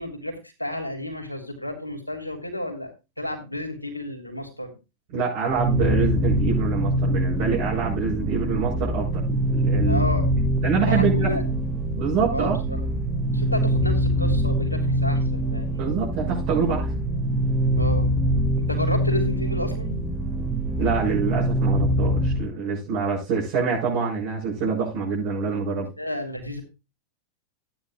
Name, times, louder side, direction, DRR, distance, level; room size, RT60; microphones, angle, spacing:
voice 1, 0.0-2.9 3.2-4.7 9.9-10.3 10.9-11.4 12.3-12.8 13.3-15.8 17.8-18.1 18.7-19.9 26.0-26.6, left 1 dB, 85° left, 3 dB, 3.2 m, -31 dB
voice 2, 5.1-9.2 9.5-10.0 10.6-11.4 12.0-12.6 15.8-16.9 20.8-25.9, right 5 dB, 45° right, -7 dB, 6.9 m, -25 dB
sound 1, 5.5-22.5, equal, 10° right, 1.9 m, -24 dB
15.5 x 9.7 x 2.5 m, 0.27 s
figure-of-eight pair, 90°, 0 cm